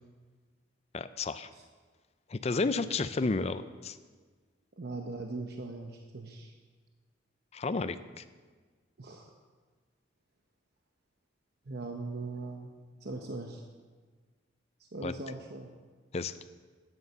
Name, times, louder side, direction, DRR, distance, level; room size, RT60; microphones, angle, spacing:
voice 1, 0.9-1.5 2.3-4.0 7.5-8.2 15.0-15.1 16.1-16.3, left 3 dB, 35° left, 12 dB, 0.4 m, -32 dB
voice 2, 4.8-6.5 9.0-9.3 11.7-12.7 13.0-13.6 14.9-15.7, right 3 dB, 55° right, 3 dB, 0.9 m, -40 dB
9.8 x 9.3 x 6.6 m, 1.5 s
head